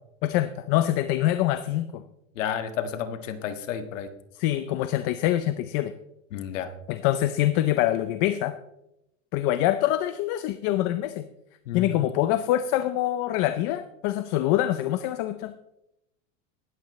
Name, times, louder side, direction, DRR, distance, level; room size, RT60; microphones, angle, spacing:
voice 1, 0.2-2.0 4.4-5.9 6.9-8.6 9.3-11.3 11.7-15.6, left 13 dB, 35° left, 11 dB, 0.5 m, -25 dB
voice 2, 2.3-4.1 6.3-6.7 11.6-12.0, left 8 dB, 90° left, 8 dB, 1.6 m, -31 dB
18.0 x 13.0 x 3.1 m, 0.87 s
supercardioid pair, 160°, 37 cm